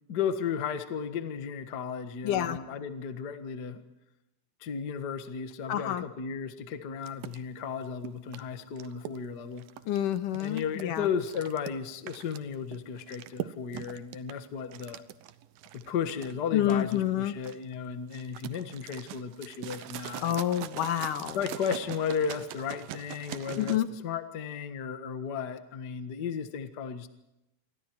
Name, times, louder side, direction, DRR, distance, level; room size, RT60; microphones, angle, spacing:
voice 1, 0.1-3.8 4.6-9.6 10.4-15.0 15.7-20.4 21.3-23.8 24.0-27.1, left 7 dB, 90° left, 9 dB, 0.9 m, -34 dB
voice 2, 2.2-2.6 5.7-6.1 9.9-11.1 16.5-17.3 20.2-21.4 23.6-23.9, left 11 dB, 65° left, 10 dB, 2.5 m, -28 dB
sound 1, 7.0-23.8, right 13 dB, 75° right, 2.5 m, -43 dB
28.0 x 24.0 x 4.7 m, 0.91 s
omnidirectional pair, 4.6 m